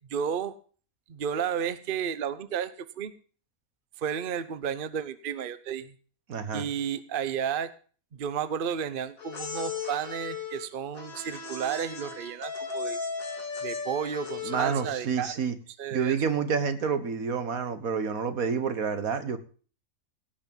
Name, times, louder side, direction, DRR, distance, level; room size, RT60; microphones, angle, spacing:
voice 1, 0.1-0.5 1.1-3.1 4.0-5.9 6.5-7.7 8.1-13.0 13.6-15.3 15.8-16.2, right 8 dB, 45° right, 13 dB, 0.9 m, -32 dB
voice 2, 6.3-6.7 14.4-15.5 15.9-19.4, right 6 dB, 80° right, 10 dB, 1.8 m, -28 dB
sound 1, 9.2-15.1, left 5 dB, 80° left, 2.6 m, -36 dB
17.0 x 6.1 x 7.0 m, 0.40 s
omnidirectional pair, 1.5 m